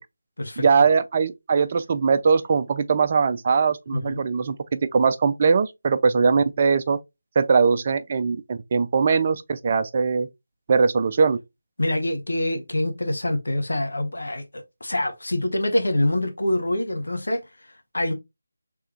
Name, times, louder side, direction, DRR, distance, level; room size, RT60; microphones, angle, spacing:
voice 1, 0.6-7.0 7.4-10.3 10.7-11.4, right 5 dB, 35° right, 0.4 m, -21 dB
voice 2, 11.8-17.4 17.9-18.1, left 1 dB, 70° left, 1.0 m, -25 dB
3.4 x 3.3 x 2.9 m
figure-of-eight pair, 160°, 0 cm